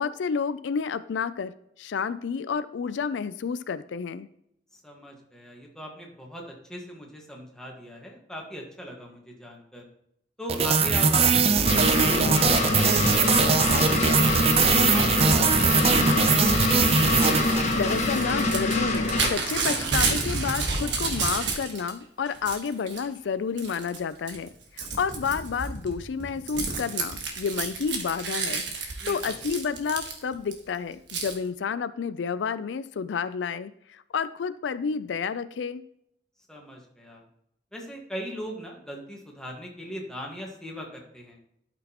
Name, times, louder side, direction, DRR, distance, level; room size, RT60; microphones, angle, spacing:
voice 1, 0.0-1.5 1.8-4.3 17.7-35.8, left 6 dB, 85° left, 14 dB, 0.4 m, -30 dB
voice 2, 4.7-9.8 10.4-12.3 12.6-16.6 29.0-29.3 36.5-37.2 37.7-41.4, equal, 5° left, -1 dB, 1.6 m, -39 dB
sound 1, 10.5-18.1, right 5 dB, 35° right, 0.6 m, -21 dB
sound 2, 11.6-19.3, left 2 dB, 40° left, 1.5 m, -25 dB
Crumpling crinkling / Tearing, 16.7-21.9 22.2-23.0 23.6-24.0 24.3-30.5 31.1-31.3, right 4 dB, 80° right, 1.5 m, -30 dB
12.0 x 6.0 x 3.0 m, 0.76 s
head